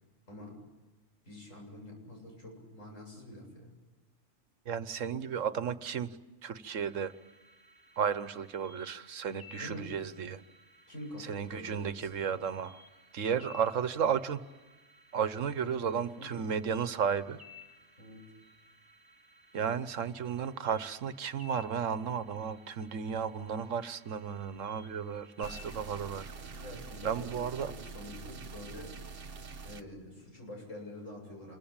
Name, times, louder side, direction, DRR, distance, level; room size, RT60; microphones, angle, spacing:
voice 1, 0.3-0.6 1.2-3.7 9.5-10.0 10.9-12.3 15.5-15.7 16.2-16.5 18.0-18.3 26.5-29.0 29.6-31.6, left 1 dB, 85° left, 0 dB, 8.3 m, -46 dB
voice 2, 4.6-6.2 6.4-7.1 8.0-10.4 11.2-12.8 13.1-14.4 15.1-17.4 19.5-26.3 27.0-27.7, right 7 dB, 80° right, 13 dB, 1.4 m, -33 dB
sound 1, 6.7-26.5, left 3 dB, 15° right, 2.8 m, -58 dB
sound 2, 25.4-29.8, right 4 dB, 50° right, 1.3 m, -45 dB
26.5 x 22.5 x 8.8 m, 1.2 s
omnidirectional pair, 1.3 m